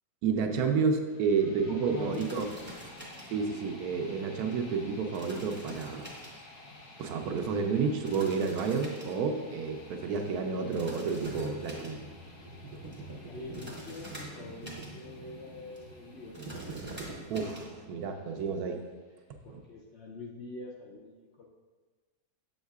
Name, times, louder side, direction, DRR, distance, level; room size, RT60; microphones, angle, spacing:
voice 1, 0.2-2.4 3.3-6.1 7.0-12.0 17.3-18.8 19.5-19.6, right 5 dB, 75° right, 4 dB, 1.1 m, -30 dB
sound 1, 1.0-19.1, left 2 dB, 85° left, 1.5 m, -53 dB
voice 2, 1.7-2.7 13.3-16.4 19.4-21.4, left 3 dB, 60° left, -1 dB, 0.7 m, -44 dB
sound 2, 1.9-17.7, right 1 dB, 10° right, 0.8 m, -50 dB
sound 3, 11.2-17.9, right 2 dB, 50° right, 0.8 m, -45 dB
7.0 x 6.4 x 2.3 m, 1.4 s
omnidirectional pair, 1.7 m